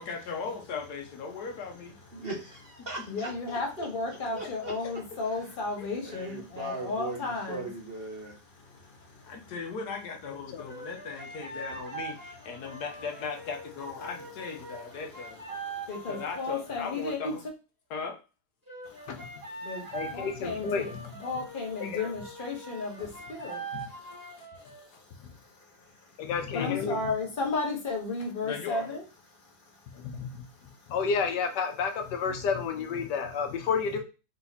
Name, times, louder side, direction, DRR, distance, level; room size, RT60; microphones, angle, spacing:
voice 1, 0.0-2.0 4.8-4.9 5.8-5.9 9.2-15.4 16.1-17.4 17.9-18.2 24.4-24.5 24.9-25.0 26.5-26.8 28.4-29.0, left 5 dB, 70° left, 3 dB, 1.3 m, -38 dB
voice 2, 2.1-3.6 4.3-5.0 6.1-8.4, right 2 dB, 45° right, -1 dB, 0.9 m, -39 dB
voice 3, 3.1-7.7 8.2-9.5 14.6-17.3 18.8-20.9 21.2-29.0 29.3-30.9, left 3 dB, 35° left, 1 dB, 1.1 m, -35 dB
voice 4, 10.3-10.7 19.1-19.3 19.9-21.0 21.8-22.1 25.2-25.3 26.2-27.0 29.9-30.4 30.9-34.0, left 5 dB, 90° left, 5 dB, 1.4 m, -31 dB
sound 1, 10.7-16.9 18.7-24.9, right 3 dB, 15° right, 1.4 m, -43 dB
4.0 x 2.8 x 4.0 m, 0.31 s
omnidirectional pair, 1.8 m